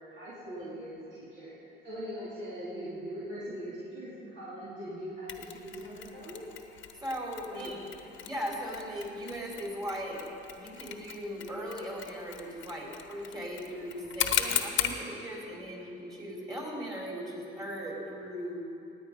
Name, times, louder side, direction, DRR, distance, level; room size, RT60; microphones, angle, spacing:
voice 1, 0.0-6.4 7.5-7.9 14.9-15.0, equal, 65° right, -10 dB, 3.2 m, -41 dB
Mechanisms, 5.3-15.0, left 9 dB, 70° left, 1.0 m, -37 dB
voice 2, 7.0-7.8 8.0-10.2 10.5-18.6, equal, 20° right, -3 dB, 3.9 m, -38 dB
16.5 x 9.6 x 5.3 m, 2.8 s
cardioid pair, 90°, 20 cm